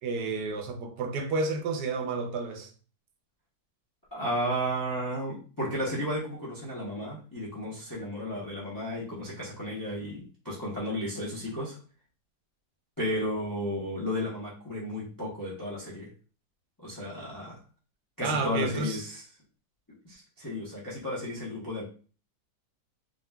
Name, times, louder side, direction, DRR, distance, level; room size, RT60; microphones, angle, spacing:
voice 1, 0.0-2.7 18.2-19.0, right 3 dB, 80° right, 1.1 m, -31 dB
voice 2, 4.1-11.8 13.0-16.1 16.8-17.6 18.2-19.2 20.0-21.8, equal, 30° left, 0.3 m, -33 dB
3.7 x 2.1 x 2.2 m
omnidirectional pair, 1.8 m